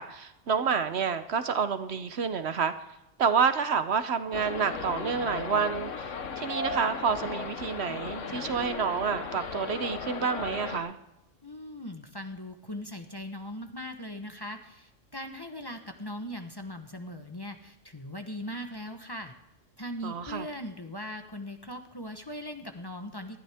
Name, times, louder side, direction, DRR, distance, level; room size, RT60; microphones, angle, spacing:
voice 1, 0.0-2.7 3.2-11.0 20.0-20.5, right 6 dB, 60° right, 11 dB, 1.0 m, -29 dB
sound 1, 4.3-10.8, left 5 dB, 80° left, 1.4 m, -36 dB
voice 2, 11.4-19.3 19.8-23.4, left 1 dB, 20° left, 5 dB, 1.0 m, -39 dB
19.0 x 12.5 x 3.5 m, 0.89 s
omnidirectional pair, 1.3 m